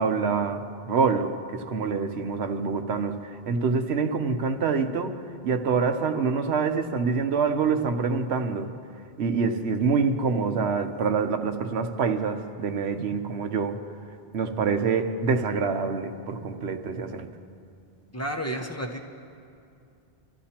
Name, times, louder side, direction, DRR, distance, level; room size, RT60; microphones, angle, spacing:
voice 1, 0.0-3.2 3.5-5.1 5.4-8.7 9.2-13.8 14.3-17.3, right 5 dB, 75° right, 7 dB, 1.1 m, -26 dB
voice 2, 18.1-19.0, right 1 dB, 15° left, 1 dB, 0.8 m, -31 dB
28.5 x 13.5 x 2.9 m, 2.5 s
omnidirectional pair, 1.1 m